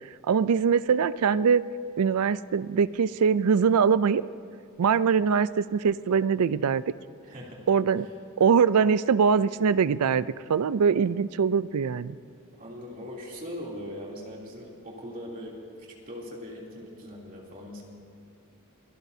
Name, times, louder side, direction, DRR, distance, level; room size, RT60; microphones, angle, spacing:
voice 1, 0.3-1.6 2.0-4.2 4.8-6.8 7.7-8.1 8.4-12.2, right 6 dB, 85° right, 16 dB, 0.4 m, -22 dB
voice 2, 7.2-7.7 12.6-15.6 16.1-17.8, equal, 40° right, -3 dB, 3.0 m, -40 dB
26.0 x 17.5 x 2.8 m, 2.3 s
head